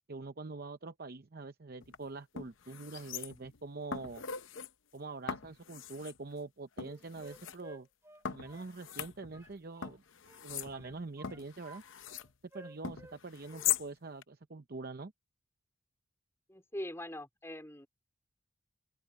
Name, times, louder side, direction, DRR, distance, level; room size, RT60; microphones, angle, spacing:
voice 1, 0.1-4.2 4.9-7.9 8.3-10.0 10.4-11.8 12.5-15.1, right 3 dB, 45° right, 0.7 m, -44 dB
sound 1, 1.8-2.0 2.4-3.6 3.9-4.7 5.3-6.2 6.8-7.6 8.2-9.5 9.8-12.3 12.8-13.9 14.2-14.3, left 9 dB, 65° left, 0.7 m, -40 dB
Wind instrument woodwind instrument, 6.8-10.0 10.2-11.8 12.1-13.2 13.4-13.7, right 1 dB, 15° right, 2.3 m, -55 dB
voice 2, 16.5-17.9, left 1 dB, 15° left, 3.8 m, -42 dB
open air
head